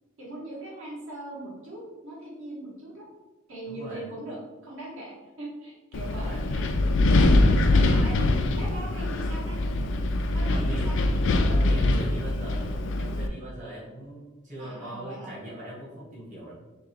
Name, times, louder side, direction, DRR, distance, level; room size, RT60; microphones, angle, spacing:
voice 1, 0.2-3.0 3.5-6.7 8.0-8.2 8.6-9.6 10.3-11.0 14.6-15.3, right 1 dB, 65° right, -5 dB, 1.5 m, -40 dB
voice 2, 3.7-4.1 6.0-6.4 7.1-8.3 8.9-9.1 10.4-10.9 11.4-16.5, right 1 dB, 35° right, -6 dB, 1.2 m, -41 dB
Wind, 5.9-13.3, left 2 dB, 60° left, 0.4 m, -23 dB
3.6 x 2.8 x 4.4 m, 1.1 s
head